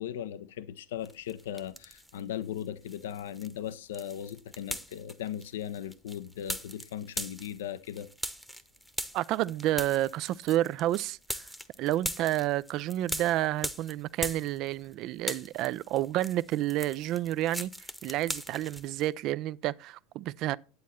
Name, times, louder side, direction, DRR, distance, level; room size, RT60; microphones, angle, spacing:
voice 1, 0.0-8.1, left 10 dB, 80° left, 0.6 m, -38 dB
sound 1, 1.1-2.2 2.5-14.9 15.2-19.1, equal, ahead, 0.9 m, -40 dB
voice 2, 9.1-11.5 11.8-17.7 18.0-20.6, right 14 dB, 50° right, 0.4 m, -30 dB
9.4 x 8.2 x 4.2 m
hypercardioid pair, 90°, 0 cm